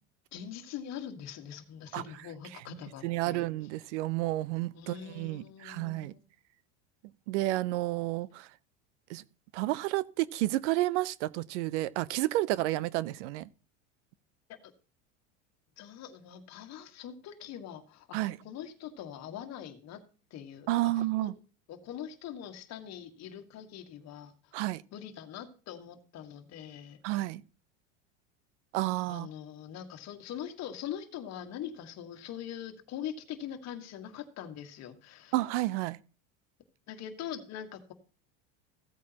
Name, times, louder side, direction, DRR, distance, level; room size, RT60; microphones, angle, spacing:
voice 1, 0.3-3.5 4.7-6.2 14.5-14.7 15.8-20.0 20.3-21.3 21.7-24.6 24.9-27.0 29.1-35.4 36.9-37.9, left 9 dB, 45° left, 1.6 m, -43 dB
voice 2, 3.0-6.1 7.3-8.5 9.1-9.2 9.5-13.5 18.1-18.4 20.7-21.3 24.5-24.8 27.0-27.4 28.7-29.3 35.3-36.0, right 17 dB, 75° right, 0.6 m, -31 dB
15.5 x 8.4 x 2.9 m
supercardioid pair, 105°, 36 cm